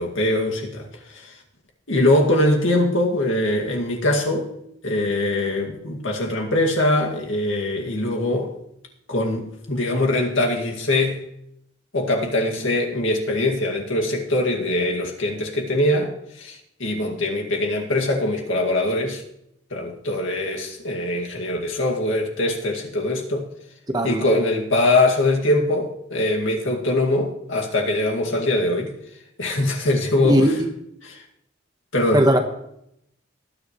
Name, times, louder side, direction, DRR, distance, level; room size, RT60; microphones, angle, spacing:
voice 1, 0.0-1.4 1.9-4.5 4.8-8.6 9.1-11.2 11.9-16.1 16.4-19.2 19.7-23.5 24.0-28.9 29.4-30.5 31.0-31.2 31.9-32.3, left 1 dB, 80° left, 0 dB, 2.1 m, -22 dB
voice 2, 30.2-30.7 32.1-32.4, equal, 20° right, 4 dB, 1.2 m, -18 dB
19.0 x 10.5 x 3.1 m, 0.77 s
head